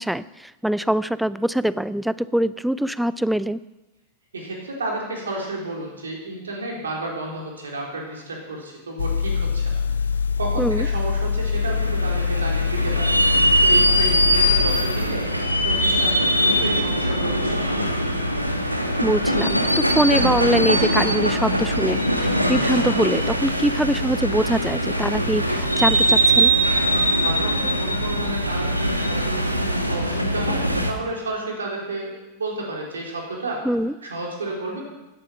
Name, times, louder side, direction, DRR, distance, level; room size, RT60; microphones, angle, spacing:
voice 1, 0.0-3.6 10.6-10.9 19.0-26.5 33.6-33.9, right 1 dB, ahead, 17 dB, 0.4 m, -23 dB
voice 2, 4.3-9.8 10.4-13.1 13.6-15.2 15.6-17.8 27.2-33.6 34.0-34.8, right 2 dB, 70° right, -1 dB, 3.7 m, -31 dB
sound 1, 9.0-15.1, left 6 dB, 70° left, 0.4 m, -24 dB
sound 2, 11.5-30.9, right 1 dB, 90° right, 1.3 m, -21 dB
17.0 x 11.0 x 5.6 m, 1.0 s
figure-of-eight pair, 90°, 0 cm